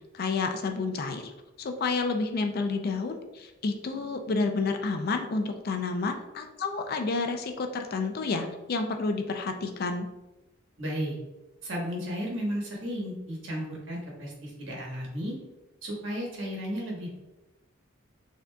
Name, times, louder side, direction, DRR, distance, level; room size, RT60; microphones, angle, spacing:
voice 1, 0.1-1.3 1.6-10.1, left 3 dB, 50° left, 5 dB, 0.4 m, -30 dB
voice 2, 10.8-11.1 11.6-15.4 15.8-17.1, equal, 65° right, -2 dB, 1.3 m, -34 dB
5.9 x 2.7 x 2.2 m, 1.0 s
head